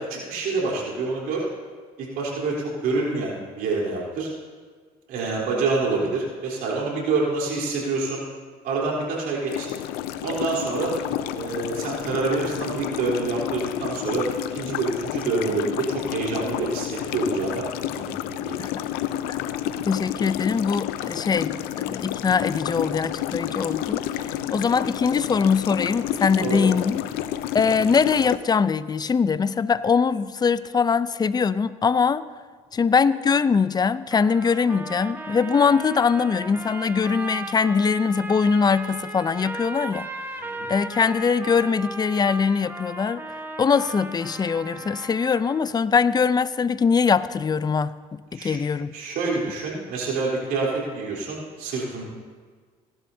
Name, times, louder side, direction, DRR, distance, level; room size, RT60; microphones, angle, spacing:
voice 1, 0.0-1.5 2.0-4.3 5.1-8.2 8.6-9.7 10.2-11.0 11.4-16.9 17.1-18.6 26.4-26.7 40.4-40.7 48.3-48.6 48.9-52.0, right 3 dB, 75° right, -3 dB, 3.7 m, -27 dB
sound 1, 9.5-28.4, left 12 dB, 80° left, 0.6 m, -30 dB
voice 2, 19.9-21.5 21.8-24.1 24.5-27.0 27.5-32.2 32.7-40.1 40.7-43.2 43.6-48.9, left 5 dB, 25° left, 16 dB, 0.5 m, -22 dB
sound 2, 34.1-45.8, right 2 dB, 15° right, 1.3 m, -36 dB
17.5 x 11.5 x 2.8 m, 1.5 s
supercardioid pair, 75°, 16 cm